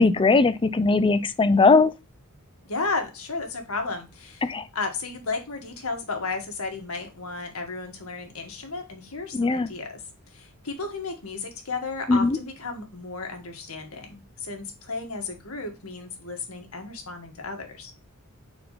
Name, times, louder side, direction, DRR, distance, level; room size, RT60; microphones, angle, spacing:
voice 1, 0.0-1.9 4.4-4.6 9.3-9.7 12.1-12.4, left 3 dB, 25° left, 0.4 m, -19 dB
voice 2, 2.7-4.5 4.7-10.0 10.3-17.9, left 3 dB, 70° left, 1.8 m, -33 dB
5.7 x 4.4 x 4.0 m
head